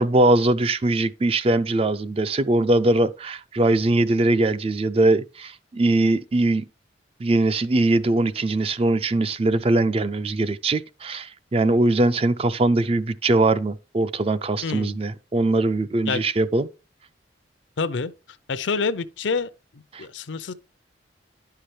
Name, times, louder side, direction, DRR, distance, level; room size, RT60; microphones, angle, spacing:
voice 1, 0.0-6.6 7.2-16.7 19.9-20.1, right 2 dB, 30° right, 0.4 m, -21 dB
voice 2, 14.6-15.0 16.1-16.3 17.8-18.1 18.5-20.5, left 4 dB, 80° left, 0.6 m, -27 dB
11.0 x 5.7 x 3.3 m
head